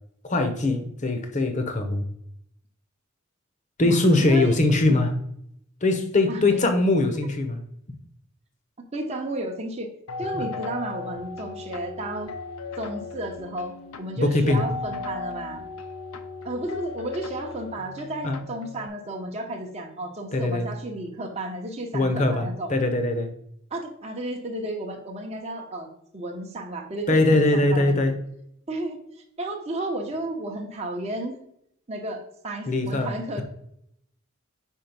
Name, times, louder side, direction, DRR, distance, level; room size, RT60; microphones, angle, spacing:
voice 1, 0.2-2.0 3.8-5.1 5.8-7.6 10.3-10.4 14.2-14.6 18.2-18.4 20.3-20.7 21.9-23.3 27.1-28.2 32.7-33.4, left 2 dB, 35° left, 7 dB, 0.8 m, -22 dB
voice 2, 3.8-4.5 4.9-5.0 6.3-6.7 8.9-9.9 10.2-12.3 12.8-15.6 16.4-22.7 23.7-25.9 26.1-28.0 28.7-31.4 31.9-33.4, right 1 dB, 30° right, 1 dB, 0.8 m, -33 dB
sound 1, 10.1-18.9, left 4 dB, 75° left, 0.6 m, -37 dB
4.9 x 4.5 x 5.2 m, 0.73 s
head